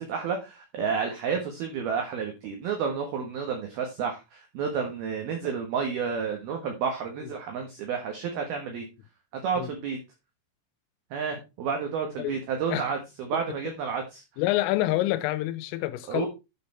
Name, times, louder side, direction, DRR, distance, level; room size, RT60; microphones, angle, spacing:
voice 1, 0.0-8.8 9.3-10.0 11.1-14.2 16.1-16.3, right 6 dB, 65° right, 2.8 m, -30 dB
voice 2, 14.4-16.3, left 16 dB, 85° left, 3.3 m, -27 dB
10.0 x 6.8 x 4.3 m
omnidirectional pair, 5.8 m